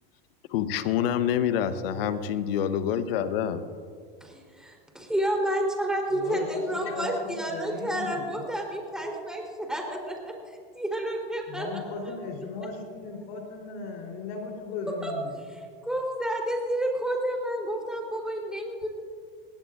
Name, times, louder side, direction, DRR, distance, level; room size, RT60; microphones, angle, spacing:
voice 1, 0.5-3.6, left 9 dB, 75° left, 11 dB, 1.0 m, -27 dB
voice 2, 4.2-11.7 12.1-12.2 14.9-15.1 15.5-18.9, right 1 dB, ahead, -1 dB, 3.6 m, -30 dB
voice 3, 6.1-8.5 11.5-15.4, left 4 dB, 60° left, 1 dB, 3.7 m, -36 dB
19.5 x 17.0 x 2.5 m, 2.1 s
hypercardioid pair, 110°, 29 cm